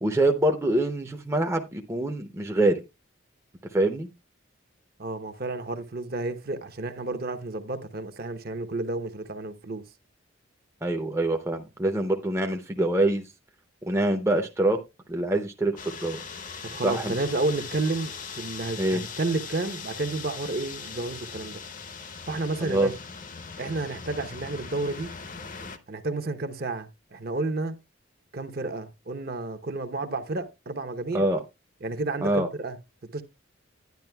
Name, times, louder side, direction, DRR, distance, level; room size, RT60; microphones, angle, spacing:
voice 1, 0.0-2.8 3.7-4.1 10.8-13.3 13.8-14.8 15.1-16.2 16.8-17.1 18.8-19.0 22.6-22.9 31.1-31.4 32.2-32.5, right 1 dB, 15° right, 0.6 m, -25 dB
voice 2, 5.0-9.8 16.6-21.6 22.3-22.9 23.6-25.1 25.9-27.8 28.3-31.2 31.8-32.8 33.1-33.2, right 2 dB, 45° right, 0.8 m, -31 dB
sound 1, 15.8-25.8, left 5 dB, 40° left, 0.7 m, -40 dB
10.5 x 10.0 x 2.2 m
head